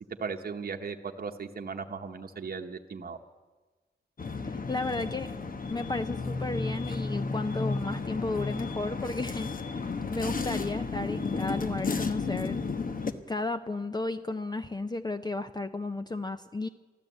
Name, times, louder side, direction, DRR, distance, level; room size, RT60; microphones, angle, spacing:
voice 1, 0.2-3.2, right 5 dB, 55° right, 4 dB, 1.0 m, -37 dB
sound 1, 4.2-13.1, left 4 dB, 50° left, 1.0 m, -33 dB
voice 2, 4.4-5.4 5.7-12.6 13.3-16.7, left 2 dB, 25° left, 9 dB, 0.5 m, -33 dB
13.5 x 13.0 x 8.0 m, 1.3 s
cardioid pair, 70°, 18 cm